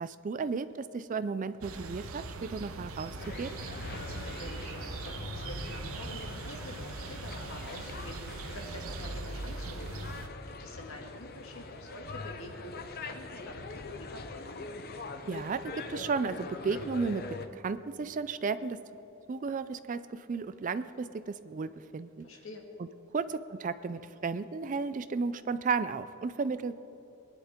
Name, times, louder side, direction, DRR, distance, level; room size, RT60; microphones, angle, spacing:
voice 1, 0.0-3.6 15.3-18.8 19.3-22.3 22.8-22.9 23.1-26.7, right 4 dB, 35° right, 13 dB, 0.3 m, -34 dB
sound 1, 1.6-10.3, right 3 dB, 75° right, 0.9 m, -41 dB
sound 2, 3.2-17.5, left 3 dB, 45° left, 0.7 m, -43 dB
voice 2, 3.8-10.1 10.5-14.6 22.2-22.7, left 1 dB, 65° left, 1 dB, 1.8 m, -47 dB
21.5 x 10.5 x 3.7 m, 3.0 s
head